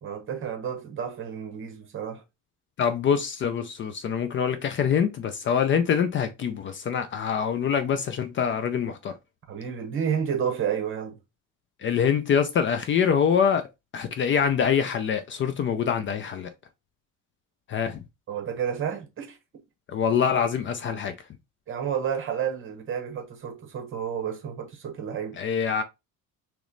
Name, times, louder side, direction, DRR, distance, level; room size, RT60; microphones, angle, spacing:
voice 1, 0.0-2.2 9.5-11.2 18.3-19.4 21.7-25.4, right 8 dB, 40° right, 1.1 m, -30 dB
voice 2, 2.8-9.1 11.8-13.7 13.9-16.5 17.7-18.0 19.9-21.1 25.4-25.8, left 7 dB, 40° left, 0.4 m, -25 dB
3.1 x 3.0 x 3.8 m
cardioid pair, 160°, 32 cm